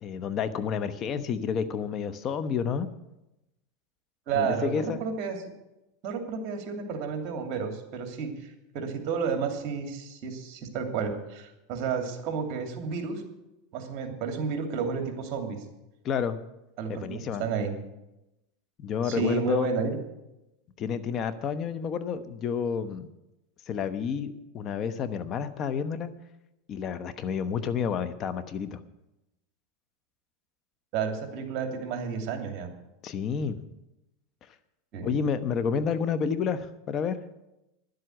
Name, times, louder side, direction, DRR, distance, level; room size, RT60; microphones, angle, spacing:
voice 1, 0.0-2.9 4.4-5.1 16.0-16.4 16.9-17.4 18.8-19.7 20.8-23.1 23.7-26.1 26.7-28.8 33.0-33.6 35.0-37.2, left 7 dB, 40° left, 13 dB, 1.0 m, -30 dB
voice 2, 4.3-5.4 6.0-13.2 13.7-15.6 16.8-17.8 19.0-20.0 30.9-32.7 34.9-35.1, right 6 dB, 50° right, 5 dB, 2.7 m, -31 dB
11.0 x 7.9 x 9.2 m, 0.93 s
supercardioid pair, 120°, 0 cm